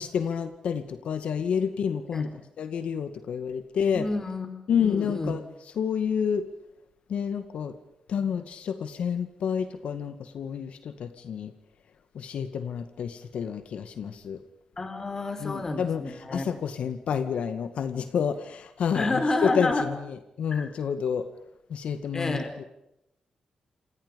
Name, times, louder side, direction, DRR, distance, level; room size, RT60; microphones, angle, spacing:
voice 1, 0.0-2.3 2.6-4.1 4.7-6.4 7.1-7.7 8.1-11.5 12.1-14.4 15.4-21.3 21.7-22.6, left 7 dB, 75° left, 9 dB, 2.1 m, -29 dB
voice 2, 3.9-4.5 4.8-5.3 14.8-16.5 18.9-19.9 20.5-20.7 22.1-22.5, left 2 dB, 25° left, 8 dB, 4.7 m, -29 dB
29.0 x 28.5 x 5.4 m, 0.86 s
wide cardioid pair, 160°, 2 cm